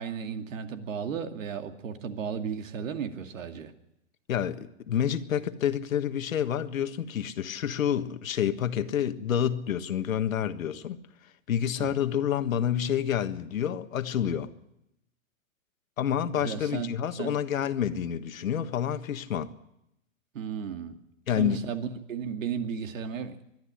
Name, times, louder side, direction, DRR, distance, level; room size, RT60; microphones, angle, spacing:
voice 1, 0.0-3.7 11.8-11.9 16.3-17.3 20.3-21.0 21.4-23.4, right 7 dB, 75° right, 2.5 m, -34 dB
voice 2, 4.3-11.0 11.5-14.5 16.0-19.5 21.3-21.6, left 9 dB, 90° left, 1.6 m, -28 dB
22.0 x 12.5 x 9.9 m
hypercardioid pair, 160°, 39 cm